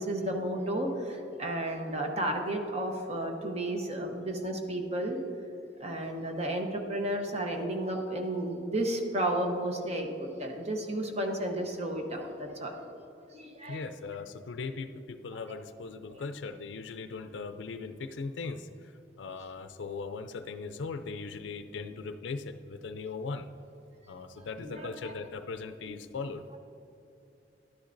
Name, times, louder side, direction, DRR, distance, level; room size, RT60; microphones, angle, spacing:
voice 1, 0.0-5.2 5.8-12.7 13.3-13.8 24.6-25.1, right 1 dB, 35° right, 3 dB, 1.0 m, -32 dB
voice 2, 13.7-18.9 19.2-23.5 24.1-26.4, left 4 dB, 85° left, 9 dB, 0.4 m, -39 dB
11.5 x 10.0 x 2.6 m, 2.9 s
head